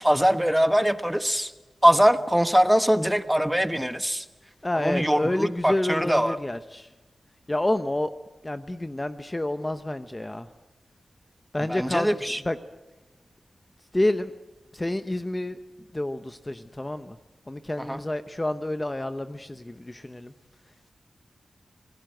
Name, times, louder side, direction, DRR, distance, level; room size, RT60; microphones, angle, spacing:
voice 1, 0.0-1.5 1.8-4.2 4.7-6.4 11.7-12.4 17.8-18.0, equal, 5° right, 11 dB, 1.2 m, -22 dB
voice 2, 4.6-6.9 7.5-8.1 8.4-10.5 11.5-12.6 13.9-14.3 14.7-15.6 15.9-17.2 17.5-20.3, left 1 dB, 20° left, 10 dB, 0.9 m, -29 dB
27.0 x 18.0 x 7.8 m, 1.1 s
wide cardioid pair, 80°, 0 cm